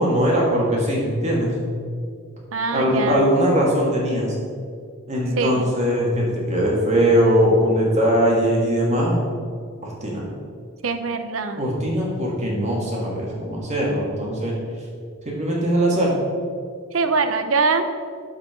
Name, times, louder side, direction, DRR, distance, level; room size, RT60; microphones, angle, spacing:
voice 1, 0.0-1.5 2.7-4.4 5.1-9.2 9.8-10.3 11.6-14.5 15.2-16.2, equal, 35° right, -3 dB, 2.1 m, -20 dB
voice 2, 2.5-3.3 5.4-5.7 10.8-11.6 16.9-17.9, right 4 dB, 75° right, 9 dB, 0.7 m, -23 dB
12.5 x 5.0 x 4.5 m, 2.2 s
head